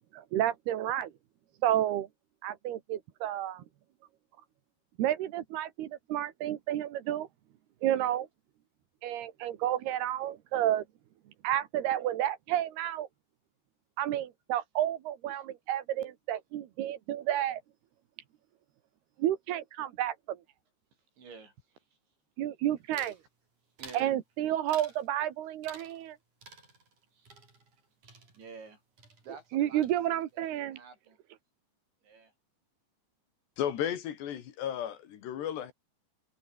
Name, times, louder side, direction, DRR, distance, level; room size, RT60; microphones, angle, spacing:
voice 1, 0.1-1.1 1.6-2.1 2.4-3.6 5.0-7.3 7.8-8.3 9.0-10.9 11.4-13.1 14.0-17.6 19.2-20.4 22.4-23.2 23.9-26.2 29.5-30.8, right 12 dB, 70° right, 3.4 m, -31 dB
voice 2, 20.9-22.2 23.6-24.2 26.6-26.7 27.1-29.8 30.1-31.2 32.0-32.3, right 5 dB, 85° right, 9.6 m, -52 dB
sound 1, 22.9-23.2 23.8-24.1 24.7-25.1 25.6-26.1 26.4-28.7 29.0-29.6 29.8-30.4, right 4 dB, 45° right, 8.5 m, -52 dB
voice 3, 33.6-35.7, left 10 dB, 70° left, 4.3 m, -34 dB
omnidirectional pair, 5.1 m